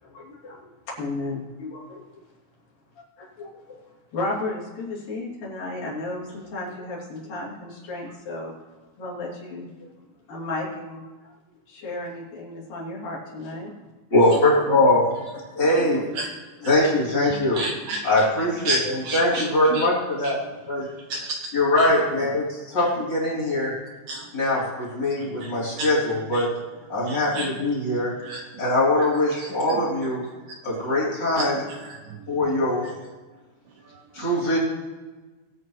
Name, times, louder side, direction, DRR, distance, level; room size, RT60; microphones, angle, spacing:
voice 1, 0.0-2.2 3.2-3.8 4.1-8.6 9.0-9.9 10.3-11.3 11.7-13.7, left 2 dB, 55° left, -6 dB, 4.5 m, -34 dB
voice 2, 14.1-15.2 15.6-16.0 16.7-17.6 18.0-18.7 19.1-20.4 20.7-20.9 21.5-23.7 24.3-26.5 26.9-28.1 28.6-30.2 30.6-31.5 32.3-32.9 34.1-34.6, left 1 dB, 25° left, -6 dB, 3.7 m, -22 dB
voice 3, 17.3-19.9 20.2-21.4 21.8-22.0 22.8-22.9 24.1-25.9 26.3-26.5 27.0-27.5 27.7-27.8 28.2-28.7 29.0-29.8 30.2-31.0 31.4-32.9 33.7-34.3, right 2 dB, 80° right, 3 dB, 2.2 m, -34 dB
21.5 x 8.6 x 3.1 m, 1.3 s
omnidirectional pair, 5.0 m